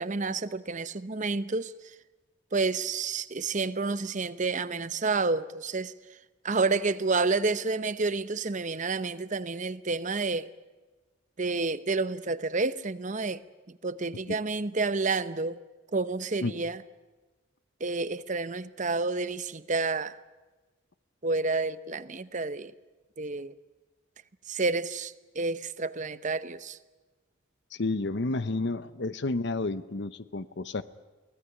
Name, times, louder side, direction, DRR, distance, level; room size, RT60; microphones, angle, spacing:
voice 1, 0.0-1.9 2.5-5.9 6.4-10.5 11.4-13.4 13.7-15.6 15.9-16.8 17.8-20.2 21.2-22.7 23.2-23.5 24.5-26.8, right 3 dB, 35° right, 15 dB, 0.8 m, -29 dB
voice 2, 27.7-30.8, left 2 dB, 55° left, 14 dB, 0.7 m, -30 dB
23.5 x 18.0 x 9.8 m, 1.2 s
head